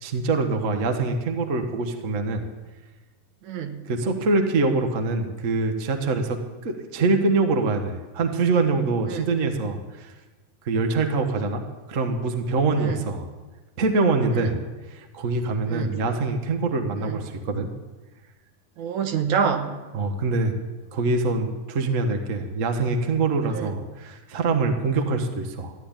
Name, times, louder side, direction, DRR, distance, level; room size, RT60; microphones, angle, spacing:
voice 1, 0.0-2.4 3.9-10.1 10.6-11.6 11.9-13.3 13.8-14.6 14.9-17.7 19.9-20.6 20.9-25.7, right 3 dB, 55° right, 5 dB, 0.9 m, -24 dB
voice 2, 3.5-3.8 9.1-9.3 12.9-13.0 15.7-16.0 17.0-17.1 18.8-19.7 23.5-23.7, right 6 dB, 70° right, 6 dB, 2.5 m, -26 dB
14.0 x 10.5 x 8.9 m, 1.2 s
omnidirectional pair, 3.6 m